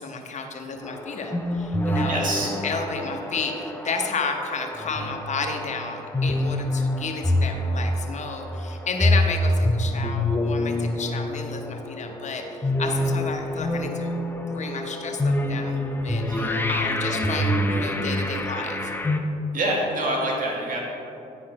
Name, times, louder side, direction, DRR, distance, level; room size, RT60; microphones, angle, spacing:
voice 1, 0.0-2.3 2.6-14.2 14.5-16.4 16.7-18.9, left 4 dB, 45° left, 3 dB, 1.0 m, -32 dB
sound 1, 0.8-19.2, left 1 dB, 10° left, 0.7 m, -26 dB
voice 2, 2.1-2.6 16.2-16.5 17.0-17.2 19.5-20.8, right 1 dB, 55° right, -2 dB, 1.5 m, -26 dB
9.6 x 4.3 x 4.8 m, 2.7 s
supercardioid pair, 65°, 17 cm